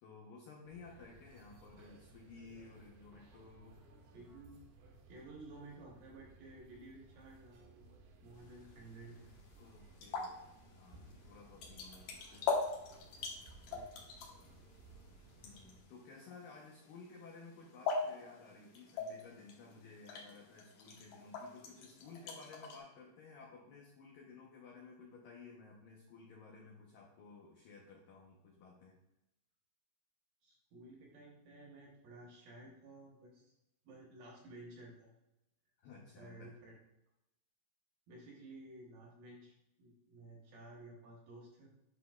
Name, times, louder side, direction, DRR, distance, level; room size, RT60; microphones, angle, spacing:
voice 1, 0.0-3.8 9.6-10.3 10.7-12.5 15.4-29.0 35.8-36.5, left 4 dB, 85° left, -2 dB, 1.9 m, -55 dB
sound 1, 0.7-15.8, right 2 dB, 85° right, 3.5 m, -60 dB
voice 2, 4.1-4.6 5.1-7.8 8.2-9.3 13.7-13.9 14.4-14.5 30.4-33.5 33.8-35.1 36.2-36.7 38.1-41.7, right 2 dB, 70° right, -2 dB, 2.4 m, -54 dB
sound 2, 8.4-22.8, left 4 dB, 65° left, 2.8 m, -43 dB
10.0 x 5.9 x 2.3 m, 0.88 s
omnidirectional pair, 5.4 m